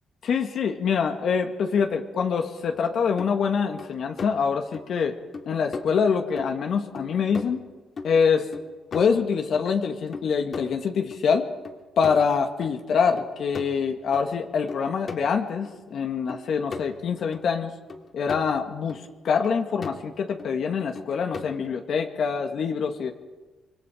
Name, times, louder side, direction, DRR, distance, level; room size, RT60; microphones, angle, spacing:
voice 1, 0.2-5.2 5.5-7.6 8.0-8.5 8.9-11.5 12.0-17.7 18.1-23.1, left 6 dB, 65° left, 4 dB, 1.9 m, -25 dB
sound 1, 2.7-2.8 3.2-3.3 3.8-4.3 4.7-4.9 5.3-5.5 5.7-5.9 6.4-6.7 6.9-7.7 8.0-9.7 10.1-11.2 11.6-12.3 12.6-12.7 13.2-14.2 14.7-15.2 15.6-15.7 16.3-17.4 17.9-18.6 18.9-19.0 19.4-20.0 20.4-20.5 20.9-21.7, left 4 dB, 45° left, 2.6 m, -38 dB
26.5 x 21.5 x 5.1 m, 1.2 s
cardioid pair, 90°, 0 cm